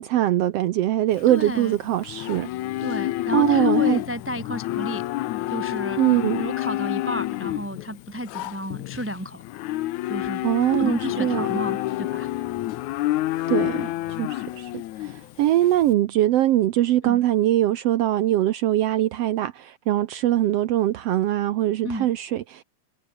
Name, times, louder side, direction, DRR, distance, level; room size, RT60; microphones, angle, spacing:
voice 1, 0.0-2.5 3.3-4.0 6.0-6.4 10.4-11.5 13.5-13.9 14.2-22.6, right 13 dB, 70° right, 1.6 m, -22 dB
Livestock farm animals working animals, 1.1-15.9, left 16 dB, 80° left, 2.2 m, -28 dB
voice 2, 1.3-1.7 2.8-5.0 5.5-6.0 6.4-9.4 10.1-10.4 10.8-12.3 17.0-17.2 21.8-22.1, equal, 10° right, 0.9 m, -32 dB
omnidirectional pair, 3.4 m